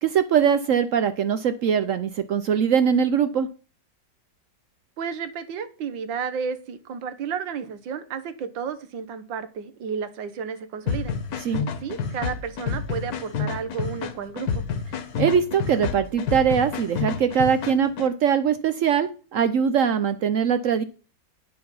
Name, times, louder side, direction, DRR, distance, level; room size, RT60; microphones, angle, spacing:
voice 1, 0.0-3.5 11.4-11.6 15.2-20.8, right 7 dB, 70° right, 11 dB, 0.7 m, -22 dB
voice 2, 5.0-11.2 11.5-14.6, right 6 dB, 90° right, 11 dB, 1.7 m, -32 dB
sound 1, 10.9-18.1, left 6 dB, 60° left, 1.4 m, -29 dB
9.7 x 5.6 x 5.4 m, 0.37 s
omnidirectional pair, 2.0 m